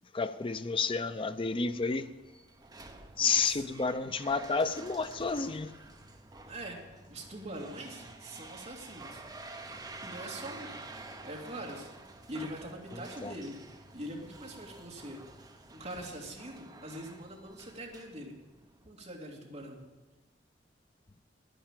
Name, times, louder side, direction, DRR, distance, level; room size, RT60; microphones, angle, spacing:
voice 1, 0.1-2.1 3.2-5.7 12.9-13.3, left 4 dB, 30° left, 0.5 m, -31 dB
sound 1, 1.4-18.9, right 2 dB, 20° right, 0.9 m, -50 dB
voice 2, 6.5-6.8 7.1-9.2 10.0-10.8 11.2-11.9 12.3-13.6 13.9-15.2 15.7-18.3 18.9-19.8, right 1 dB, 40° right, 2.4 m, -43 dB
10.5 x 10.0 x 7.5 m
head